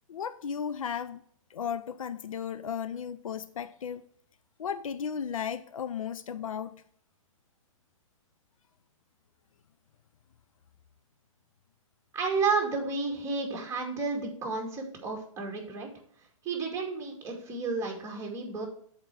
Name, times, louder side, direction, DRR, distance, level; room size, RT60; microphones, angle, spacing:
voice 1, 0.1-1.2 1.5-4.0 4.6-6.7, left 7 dB, 80° left, 13 dB, 0.5 m, -35 dB
voice 2, 12.1-15.9 16.4-18.7, right 4 dB, 15° right, 0 dB, 2.2 m, -31 dB
7.4 x 4.4 x 6.1 m, 0.63 s
hypercardioid pair, 120°, 17 cm